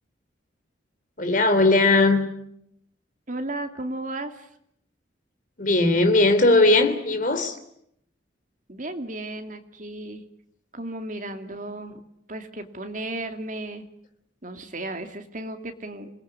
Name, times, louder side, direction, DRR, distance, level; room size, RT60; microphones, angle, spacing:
voice 1, 1.2-2.3 5.6-7.6, left 2 dB, 45° left, 3.2 m, -18 dB
voice 2, 3.3-4.5 8.7-10.2 10.7-12.0 12.3-13.9 14.4-16.1, right 2 dB, 45° right, 2.6 m, -34 dB
27.5 x 20.5 x 9.7 m
head